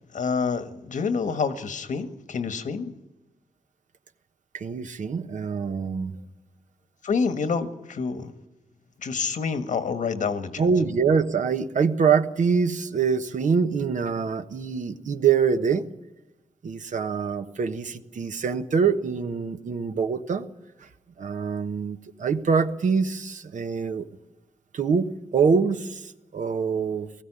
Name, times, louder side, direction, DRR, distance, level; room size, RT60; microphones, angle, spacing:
voice 1, 0.1-2.9 7.0-8.3 9.0-10.6, left 5 dB, 80° left, 9 dB, 1.6 m, -27 dB
voice 2, 4.5-6.1 10.6-15.9 16.6-20.5 21.2-24.1 24.7-27.1, right 6 dB, 75° right, 8 dB, 1.3 m, -24 dB
20.0 x 15.0 x 10.0 m, 1.0 s
cardioid pair, 80°, 13 cm